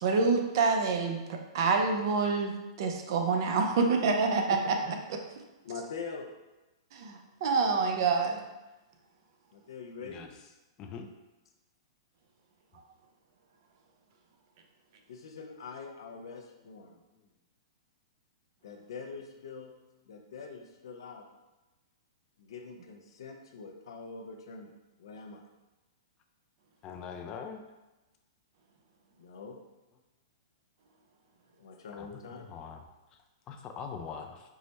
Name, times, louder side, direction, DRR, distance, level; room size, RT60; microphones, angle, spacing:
voice 1, 0.0-5.0 6.9-8.4, right 4 dB, 55° right, 4 dB, 0.6 m, -27 dB
voice 2, 5.6-6.3 9.5-10.2 15.1-17.0 18.6-19.7 20.1-21.3 22.4-24.7 25.0-25.4 29.2-29.6 31.6-32.5, left 5 dB, 75° left, 3 dB, 0.6 m, -44 dB
voice 3, 26.8-27.6 32.0-32.1 32.5-32.8 33.5-34.4, left 6 dB, 30° left, 5 dB, 0.4 m, -41 dB
4.7 x 2.1 x 4.0 m, 1.1 s
hypercardioid pair, 135°, 3 cm